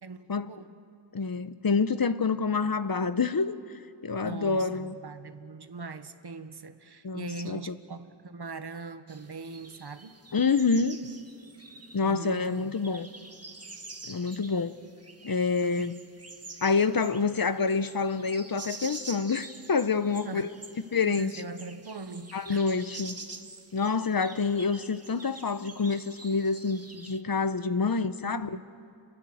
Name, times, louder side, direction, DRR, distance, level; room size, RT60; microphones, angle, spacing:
voice 1, 0.0-0.7 4.2-10.2 12.0-12.8 15.8-15.9 20.1-20.5 21.1-22.6 27.8-28.6, right 4 dB, 65° right, 10 dB, 1.4 m, -41 dB
voice 2, 1.1-3.6 4.0-5.0 7.0-7.7 10.3-11.0 11.9-13.1 14.0-14.8 15.2-16.0 16.6-20.5 20.9-21.3 22.3-23.1 23.7-28.6, left 4 dB, 55° left, 12 dB, 0.9 m, -27 dB
sound 1, 9.1-27.2, right 3 dB, 35° right, 1.6 m, -47 dB
29.5 x 21.5 x 7.9 m, 2.8 s
wide cardioid pair, 75°, 42 cm